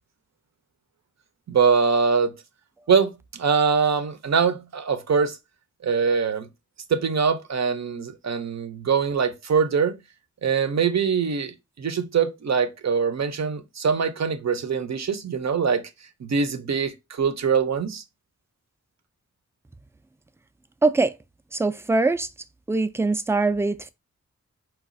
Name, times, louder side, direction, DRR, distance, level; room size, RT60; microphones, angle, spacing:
voice 1, 1.5-2.3 2.9-5.4 5.8-6.5 6.9-9.9 10.4-15.8 16.2-18.0, right 6 dB, 60° right, 0.6 m, -23 dB
voice 2, 20.8-21.1 21.5-22.3 22.7-23.9, right 3 dB, 10° right, 0.3 m, -22 dB
4.0 x 2.3 x 2.5 m
cardioid pair, 50°, 30 cm